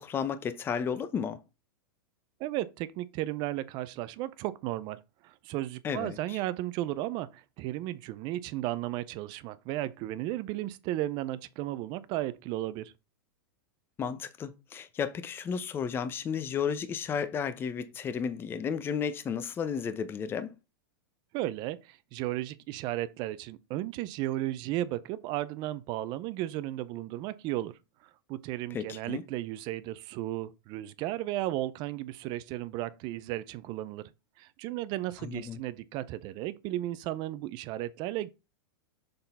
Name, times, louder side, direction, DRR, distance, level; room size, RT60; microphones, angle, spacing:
voice 1, 0.0-1.4 5.8-6.4 14.0-20.5 28.7-29.2 35.2-35.6, left 7 dB, 20° left, 0.6 m, -33 dB
voice 2, 2.4-12.9 21.3-34.0 34.4-38.3, right 15 dB, 40° right, 0.5 m, -34 dB
6.7 x 3.9 x 4.1 m
supercardioid pair, 145°, 12 cm